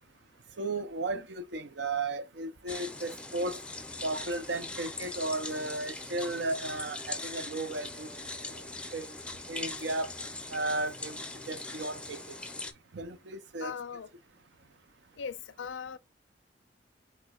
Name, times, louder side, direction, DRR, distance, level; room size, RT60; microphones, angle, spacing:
voice 1, 0.6-3.6 4.0-8.1 8.9-9.1 9.5-10.1 10.5-11.2 11.5-12.2 12.9-13.7, right 2 dB, 70° right, 0.6 m, -34 dB
sound 1, 2.7-12.7, left 2 dB, 5° left, 0.5 m, -41 dB
sound 2, 3.7-11.9, right 1 dB, 40° right, 0.8 m, -58 dB
voice 2, 13.6-14.1 15.2-16.0, left 6 dB, 85° left, 0.4 m, -39 dB
4.9 x 4.6 x 2.4 m
head